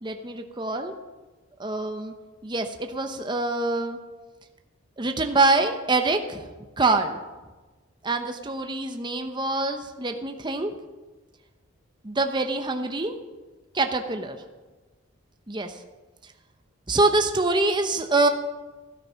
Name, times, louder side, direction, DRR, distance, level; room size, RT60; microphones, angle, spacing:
voice 1, 0.0-1.0 1.6-2.1 2.4-4.0 5.0-6.4 6.8-7.2 8.0-10.7 12.0-13.1 13.7-14.4 15.5-15.8 16.9-18.3, right 2 dB, 20° right, 6 dB, 0.9 m, -25 dB
13.0 x 12.0 x 5.7 m, 1.2 s
head